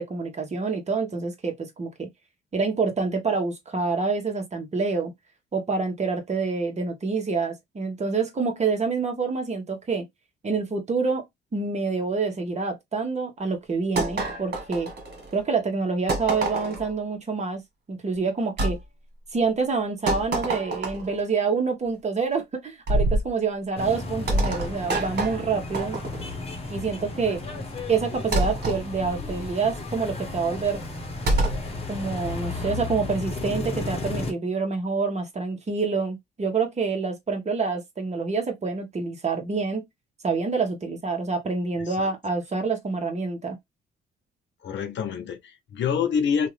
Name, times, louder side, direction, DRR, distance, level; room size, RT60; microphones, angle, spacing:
voice 1, 0.0-2.1 2.5-5.1 5.5-10.0 10.4-11.2 11.5-14.9 15.3-17.6 17.9-18.8 19.3-26.0 26.7-27.4 27.9-30.8 31.9-39.8 40.2-43.6, right 4 dB, 35° right, 1.1 m, -27 dB
sound 1, 14.0-15.4 16.1-16.9 18.6-18.8 20.1-21.2 22.9-23.3 24.3-26.4 28.3-28.8 31.3-31.6, right 2 dB, 50° right, 1.7 m, -26 dB
sound 2, 23.8-34.3, left 2 dB, 30° left, 1.1 m, -34 dB
voice 2, 44.6-46.5, left 7 dB, 65° left, 0.8 m, -27 dB
2.7 x 2.4 x 3.2 m
cardioid pair, 90°, 20 cm